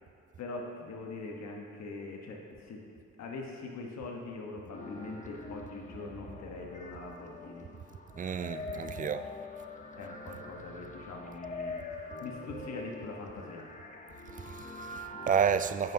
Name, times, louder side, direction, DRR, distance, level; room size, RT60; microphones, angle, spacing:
voice 1, 0.4-2.8 3.2-7.7 10.0-13.6, left 3 dB, 60° left, 1.3 m, -42 dB
sound 1, 4.7-15.4, left 2 dB, 25° left, 0.8 m, -44 dB
voice 2, 8.2-9.3 14.4-15.9, right 7 dB, 30° right, 0.4 m, -31 dB
15.0 x 5.5 x 2.8 m
cardioid pair, 90°, 30 cm